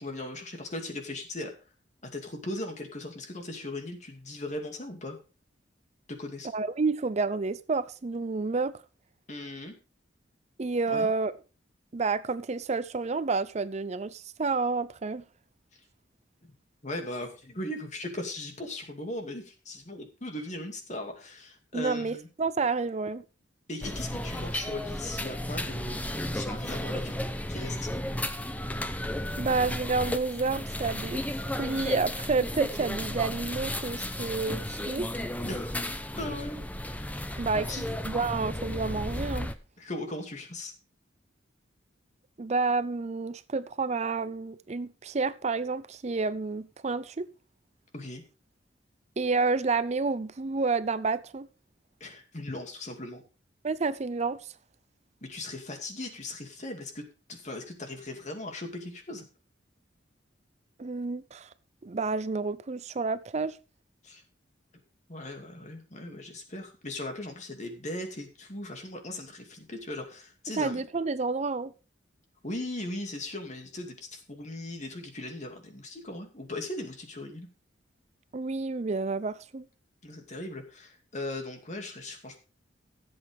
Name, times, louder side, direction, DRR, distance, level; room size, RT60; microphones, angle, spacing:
voice 1, 0.0-1.5 2.0-5.2 6.1-6.5 9.3-9.8 10.9-11.1 16.8-22.3 23.7-27.2 27.5-27.9 35.4-35.8 36.2-36.6 37.5-37.9 39.8-40.7 47.9-48.2 52.0-53.2 55.2-59.2 64.0-64.2 65.1-70.8 72.4-77.5 80.0-82.4, left 1 dB, 40° left, 2.5 m, -38 dB
voice 2, 6.5-8.8 10.6-11.3 11.9-15.2 21.7-23.2 29.4-35.1 37.4-37.7 38.0-39.5 42.4-47.3 49.2-51.5 53.6-54.5 60.8-61.5 61.8-63.6 70.6-71.7 78.3-79.7, right 4 dB, 40° right, 0.5 m, -29 dB
sound 1, 23.8-39.5, left 1 dB, 10° left, 0.8 m, -34 dB
16.0 x 8.0 x 3.5 m
head